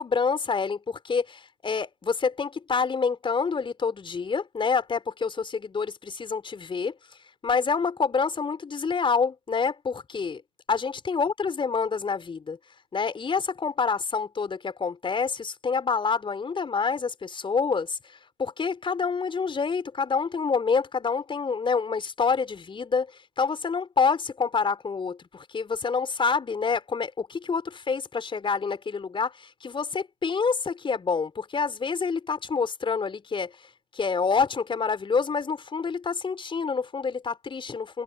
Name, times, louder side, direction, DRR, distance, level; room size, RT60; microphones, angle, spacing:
voice 1, 0.0-6.9 7.4-10.4 10.7-12.6 12.9-18.0 18.4-23.1 23.4-33.5 33.9-38.0, left 5 dB, 15° left, 4.1 m, -27 dB
figure-of-eight pair, 85°, 29 cm